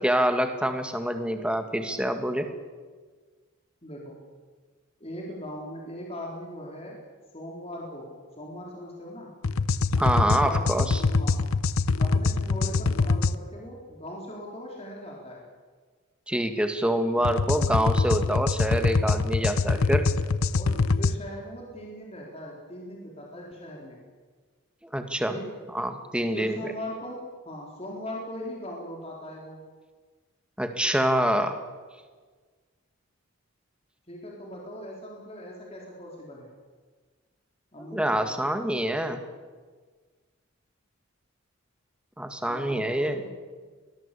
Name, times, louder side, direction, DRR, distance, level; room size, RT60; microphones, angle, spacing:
voice 1, 0.0-2.5 10.0-11.0 16.3-20.1 24.9-25.3 25.7-26.6 30.6-31.6 37.8-39.2 42.2-43.2, right 1 dB, 5° right, 7 dB, 1.9 m, -26 dB
voice 2, 3.8-4.2 5.0-7.0 7.3-8.1 8.4-9.3 10.2-10.9 11.2-11.5 12.0-15.5 17.1-17.3 20.5-24.0 25.3-25.6 26.3-29.6 34.1-36.5 37.7-38.4 42.5-43.4, equal, 30° left, -2 dB, 4.1 m, -39 dB
sound 1, 9.4-13.4 17.2-21.1, left 3 dB, 80° left, 0.8 m, -24 dB
24.0 x 18.5 x 8.5 m, 1.4 s
head